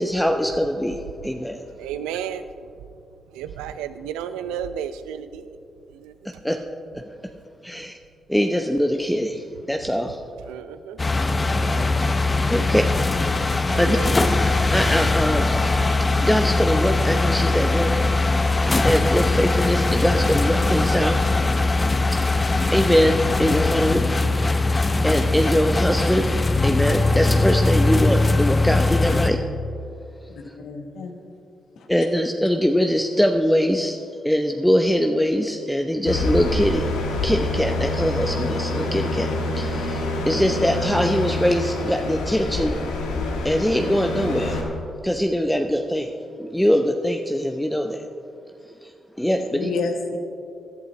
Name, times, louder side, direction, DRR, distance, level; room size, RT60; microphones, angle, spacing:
voice 1, 0.0-1.6 6.4-6.6 6.9-7.0 7.6-7.9 8.3-10.2 12.5-12.8 13.8-14.0 14.7-15.8 16.2-17.9 18.2-18.3 18.8-21.2 21.7-21.9 22.7-24.1 25.0-26.3 26.6-29.4 31.9-34.0 34.2-36.9 37.2-42.7 43.4-44.6 45.0-46.1 46.4-48.0 48.8-48.9 49.2-49.7, equal, 5° left, 4 dB, 0.8 m, -22 dB
voice 2, 1.8-2.4 3.3-5.6 6.0-6.1 10.5-11.0 12.6-12.7 13.7-14.2, right 9 dB, 85° right, 12 dB, 0.5 m, -32 dB
sound 1, 11.0-29.3, left 2 dB, 30° left, 0.8 m, -21 dB
voice 3, 30.3-31.1 31.8-31.9 49.5-50.2, left 4 dB, 70° left, 4 dB, 1.3 m, -29 dB
sound 2, 36.1-44.6, left 2 dB, 85° left, 1.4 m, -26 dB
18.0 x 11.5 x 3.2 m, 2.5 s
hypercardioid pair, 40°, 0 cm